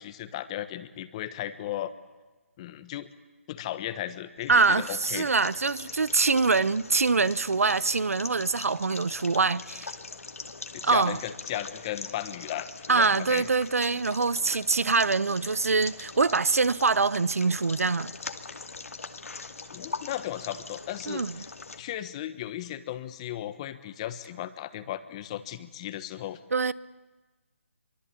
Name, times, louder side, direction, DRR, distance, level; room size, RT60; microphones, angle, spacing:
voice 1, 0.0-1.9 2.6-3.1 3.5-5.3 10.8-13.5 19.7-21.5 21.8-26.4, left 12 dB, 25° left, 1.3 m, -36 dB
sound 1, 4.4-21.8, left 4 dB, 85° left, 2.3 m, -42 dB
voice 2, 4.5-9.9 10.8-11.2 12.9-18.1 21.1-21.4 26.5-26.7, right 4 dB, 85° right, 0.9 m, -24 dB
25.5 x 23.5 x 8.6 m
hypercardioid pair, 160°, 8 cm